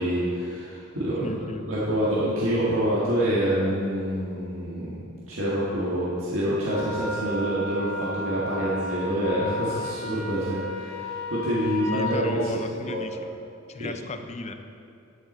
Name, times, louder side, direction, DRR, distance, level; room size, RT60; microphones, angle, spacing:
voice 1, 0.0-1.2 1.7-5.0 5.3-12.5 12.8-13.2 13.8-13.9, equal, 65° right, -8 dB, 1.8 m, -26 dB
voice 2, 1.2-1.7 11.9-13.2 13.7-14.5, left 3 dB, 30° left, 7 dB, 0.5 m, -34 dB
Wind instrument woodwind instrument, 6.7-12.2, left 2 dB, 80° left, 1.3 m, -34 dB
12.5 x 7.4 x 4.3 m, 2.5 s
head